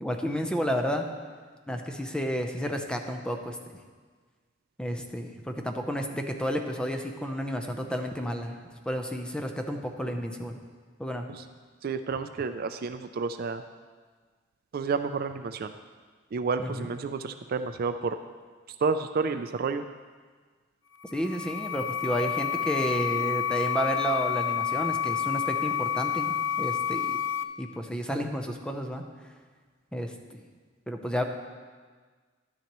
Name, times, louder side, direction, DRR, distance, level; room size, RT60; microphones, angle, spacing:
voice 1, 0.0-1.0 1.7-3.6 4.8-8.6 8.8-10.6 11.0-11.3 16.6-16.9 21.1-27.2 27.6-29.0 29.9-30.4 30.9-31.2, equal, 5° left, 4 dB, 0.6 m, -31 dB
voice 2, 11.8-13.6 14.7-15.7 16.3-18.2 18.8-19.8, right 4 dB, 50° right, 9 dB, 0.4 m, -30 dB
sound 1, 20.9-27.4, left 8 dB, 85° left, 0.5 m, -29 dB
11.5 x 10.0 x 3.0 m, 1.5 s
head